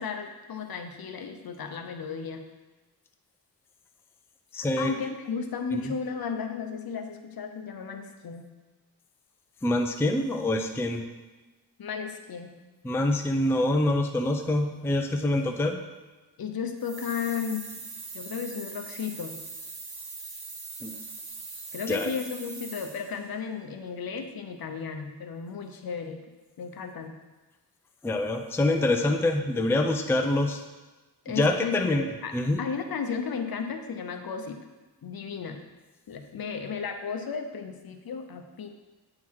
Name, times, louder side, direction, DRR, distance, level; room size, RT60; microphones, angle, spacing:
voice 1, 0.0-2.4 4.6-8.5 11.8-12.5 16.4-17.7 18.1-19.4 21.7-26.2 26.6-27.1 31.2-34.6 35.0-35.6 36.1-38.7, left 6 dB, 65° left, 5 dB, 0.7 m, -34 dB
voice 2, 4.5-4.9 5.7-5.9 9.6-11.0 12.8-15.8 20.8-21.0 21.9-22.1 28.0-30.6 31.3-32.6, left 1 dB, 5° left, 4 dB, 0.4 m, -26 dB
sound 1, 16.8-23.2, right 3 dB, 65° right, 1.2 m, -41 dB
8.6 x 3.8 x 4.6 m, 1.2 s
wide cardioid pair, 140°, 39 cm